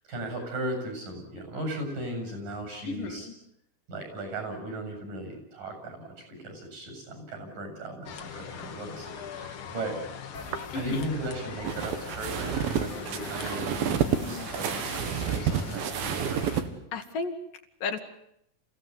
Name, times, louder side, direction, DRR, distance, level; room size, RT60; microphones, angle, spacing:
voice 1, 0.1-3.3 3.9-10.0 10.7-16.4, right 1 dB, 60° right, 5 dB, 8.9 m, -37 dB
voice 2, 2.9-3.3 10.7-11.0 14.2-14.5 16.9-17.3 17.8-18.0, left 4 dB, 70° left, 6 dB, 3.3 m, -33 dB
sound 1, 8.1-16.6, left 7 dB, 50° left, 1.8 m, -41 dB
sound 2, 10.4-16.7, right 8 dB, 80° right, 3.4 m, -30 dB
27.5 x 16.5 x 9.6 m, 0.75 s
omnidirectional pair, 4.2 m